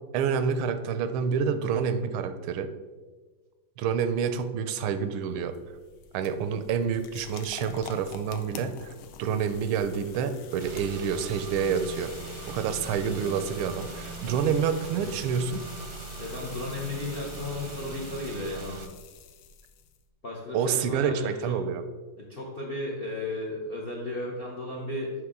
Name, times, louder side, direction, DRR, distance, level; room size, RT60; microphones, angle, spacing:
voice 1, 0.1-2.7 3.8-5.6 6.1-8.9 9.2-12.1 12.5-15.7 20.5-21.8, right 6 dB, 85° right, 10 dB, 1.4 m, -28 dB
sound 1, 5.2-20.0, left 7 dB, 80° left, 1.4 m, -47 dB
Car / Engine, 10.6-18.9, right 5 dB, 70° right, 1.0 m, -40 dB
voice 2, 16.2-18.8 20.2-21.6 22.2-25.1, left 2 dB, 65° left, -2 dB, 0.5 m, -34 dB
6.7 x 5.1 x 3.6 m, 1.3 s
omnidirectional pair, 2.3 m